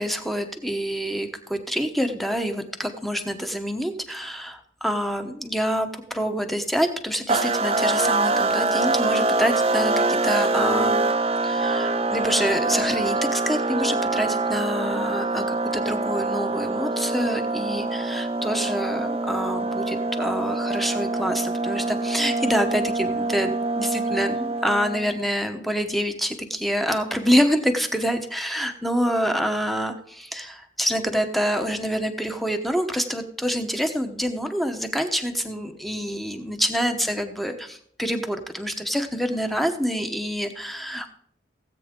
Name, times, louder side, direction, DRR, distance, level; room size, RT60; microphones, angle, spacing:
voice 1, 0.0-11.0 11.4-41.1, equal, ahead, 6 dB, 1.0 m, -26 dB
sound 1, 7.3-25.1, right 2 dB, 30° right, 0.7 m, -24 dB
17.5 x 8.3 x 3.8 m, 0.64 s
head